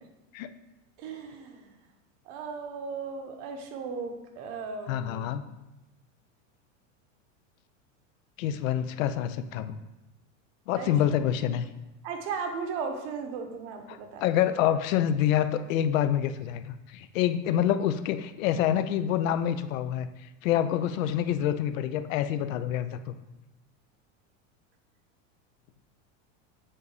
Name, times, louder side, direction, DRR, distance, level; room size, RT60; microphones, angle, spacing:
voice 1, 1.0-1.7 2.3-5.3 10.8-11.2 12.0-14.3, right 5 dB, 55° right, 5 dB, 1.0 m, -36 dB
voice 2, 4.9-5.4 8.4-9.8 10.7-11.7 13.9-23.1, left 10 dB, 80° left, 11 dB, 0.5 m, -27 dB
7.5 x 2.7 x 4.8 m, 1.0 s
supercardioid pair, 145°, 39 cm